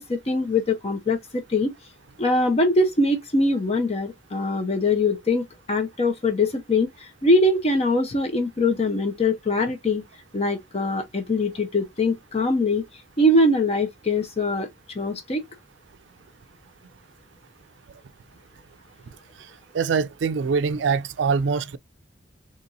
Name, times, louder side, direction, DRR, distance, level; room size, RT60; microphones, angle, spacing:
voice 1, 0.0-1.7 2.2-10.0 10.3-12.8 13.2-14.7 14.9-15.4, left 2 dB, 35° left, 0.8 m, -22 dB
voice 2, 19.7-21.8, right 5 dB, 75° right, 0.4 m, -23 dB
4.0 x 3.0 x 2.6 m
head